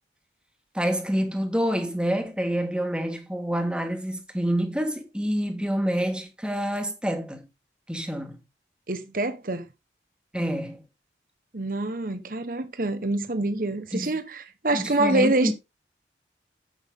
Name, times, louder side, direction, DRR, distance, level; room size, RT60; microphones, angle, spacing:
voice 1, 0.7-7.4 7.9-8.4 10.3-10.8 13.9-14.1 14.7-15.5, equal, 5° right, 1.7 m, -27 dB
voice 2, 8.9-9.7 11.5-15.5, right 2 dB, 50° right, 1.1 m, -26 dB
9.4 x 8.0 x 3.7 m
head